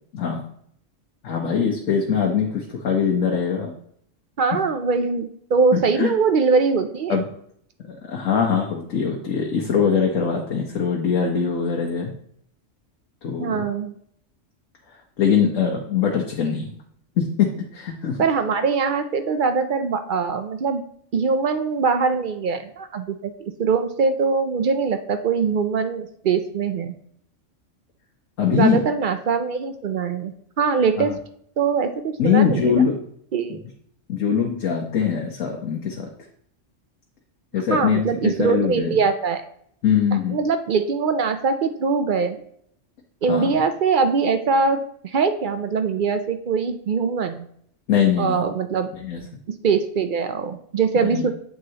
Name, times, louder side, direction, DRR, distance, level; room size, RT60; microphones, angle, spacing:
voice 1, 1.2-3.7 5.7-6.1 7.1-7.3 8.1-12.1 13.2-13.6 15.2-16.7 17.2-18.2 28.4-28.8 31.0-31.1 32.2-33.0 33.5-33.6 34.1-36.1 37.5-39.0 39.8-40.4 43.3-43.5 47.9-48.4 49.0-49.2 51.0-51.2, left 7 dB, 80° left, 0 dB, 1.3 m, -22 dB
voice 2, 4.4-7.2 13.4-13.9 18.2-20.9 21.1-27.0 28.5-31.1 31.6-32.8 33.3-33.6 37.7-39.4 40.3-42.4 43.2-47.5 48.2-48.9 49.5-51.3, right 5 dB, 55° right, 9 dB, 0.6 m, -22 dB
8.0 x 6.3 x 2.9 m, 0.66 s
omnidirectional pair, 1.3 m